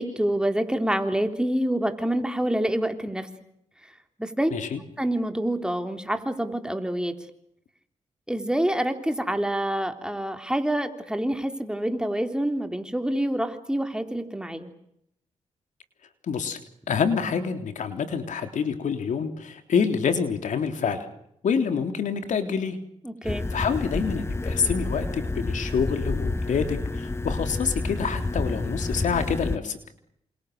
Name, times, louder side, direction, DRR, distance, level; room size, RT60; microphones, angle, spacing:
voice 1, 0.0-3.3 4.2-4.6 5.0-7.1 8.3-14.7 23.0-23.4, right 1 dB, 5° right, 6 dB, 3.7 m, -27 dB
voice 2, 16.3-16.6 16.9-21.1 21.4-22.8 23.5-29.8, left 6 dB, 80° left, 8 dB, 3.5 m, -27 dB
sound 1, 23.2-29.6, left 2 dB, 20° left, 1.1 m, -29 dB
28.5 x 27.5 x 6.8 m, 0.76 s
cardioid pair, 75°, 13 cm